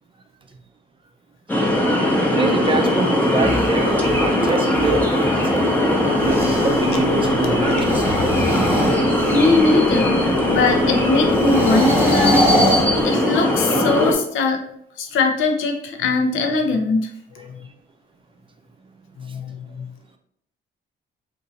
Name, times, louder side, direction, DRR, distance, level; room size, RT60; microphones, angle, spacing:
sound 1, 1.5-14.1, left 1 dB, 10° left, 0.7 m, -19 dB
voice 1, 2.2-8.1, right 3 dB, 25° right, 5 dB, 0.5 m, -26 dB
sound 2, 3.2-6.9 7.7-9.7 11.3-13.6, equal, 10° right, 1.1 m, -24 dB
Male speech man speaking / Car / Idling, 6.2-13.0, left 4 dB, 40° left, 0.5 m, -37 dB
voice 2, 9.3-12.5 13.0-14.6 15.0-17.1 17.3-17.6 19.2-19.9, left 3 dB, 80° left, 3 dB, 0.7 m, -21 dB
2.6 x 2.6 x 4.1 m, 0.70 s
cardioid pair, 90°, 20 cm